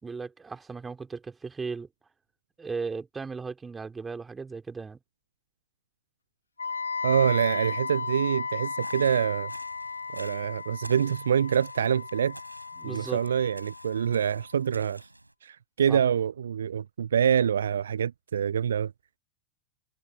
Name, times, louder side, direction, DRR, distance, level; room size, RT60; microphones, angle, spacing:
voice 1, 0.0-1.9 2.6-5.0 12.8-13.2 15.9-16.0, right 4 dB, 15° right, 3.1 m, -36 dB
Wind instrument woodwind instrument, 6.6-14.5, left 5 dB, 75° left, 1.0 m, -35 dB
voice 2, 7.0-9.5 10.1-12.4 12.8-15.1 15.4-18.9, right 8 dB, 65° right, 0.3 m, -26 dB
sound 1, 8.8-15.3, right 1 dB, 85° right, 5.3 m, -49 dB
figure-of-eight pair, 90°, 0 cm